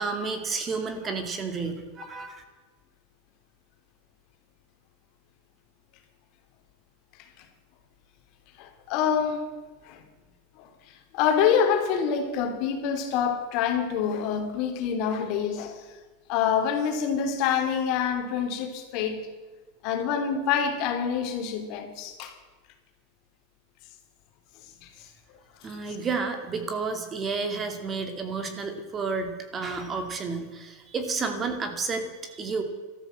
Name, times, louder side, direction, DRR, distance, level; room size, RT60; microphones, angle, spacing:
voice 1, 0.0-2.4 25.6-32.6, right 4 dB, 25° right, 2.6 m, -31 dB
voice 2, 8.6-9.5 9.8-10.0 10.6-10.7 11.1-15.8 16.3-19.3 19.8-22.3, left 7 dB, 55° left, 2.9 m, -26 dB
13.5 x 13.5 x 7.8 m
supercardioid pair, 125°, 0 cm